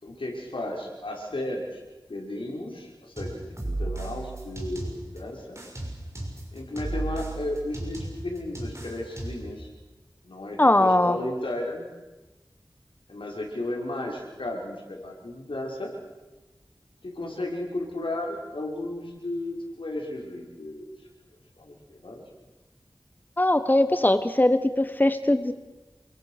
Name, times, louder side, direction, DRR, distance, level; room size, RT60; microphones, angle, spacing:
voice 1, 0.0-1.8 2.1-5.6 6.5-9.7 10.2-11.9 13.1-15.9 17.0-22.2, left 1 dB, 85° left, -1 dB, 5.9 m, -34 dB
sound 1, 3.2-5.2 5.6-9.5, right 2 dB, 35° right, 6.1 m, -34 dB
voice 2, 10.6-11.2 23.4-25.5, left 1 dB, 20° left, 11 dB, 1.2 m, -20 dB
28.5 x 23.5 x 6.7 m, 1.1 s
wide cardioid pair, 55°, 9 cm